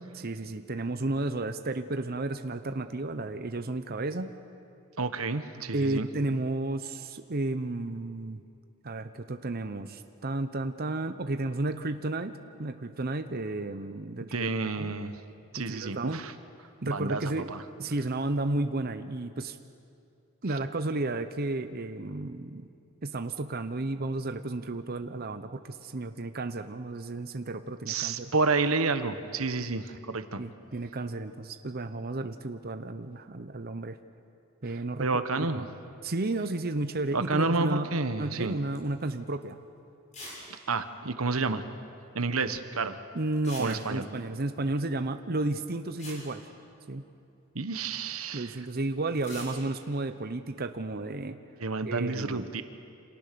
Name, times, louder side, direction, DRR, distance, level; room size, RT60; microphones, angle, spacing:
voice 1, 0.1-4.3 5.7-8.4 8.8-14.9 15.7-16.2 16.8-17.5 17.8-19.6 20.4-22.6 23.0-28.3 30.4-34.0 34.6-35.1 35.3-35.7 36.0-37.9 38.2-39.6 43.1-46.5 46.9-47.0 48.3-51.4 51.8-52.5, right 2 dB, 45° right, 8 dB, 0.9 m, -32 dB
voice 2, 5.0-6.1 14.2-15.2 15.5-16.3 16.8-17.6 27.9-30.4 35.0-35.6 37.1-38.6 40.5-41.6 42.1-43.0 43.6-44.1 47.5-48.6 51.6-52.6, right 3 dB, 90° right, 10 dB, 1.4 m, -30 dB
sound 1, 38.7-39.0 39.4-39.5 40.1-40.5 40.7-40.8 41.0-41.1 43.3-44.2 45.6-45.7 46.0-47.2 49.1-49.6, left 1 dB, 35° left, 8.0 m, -44 dB
28.5 x 27.0 x 6.9 m, 2.5 s
head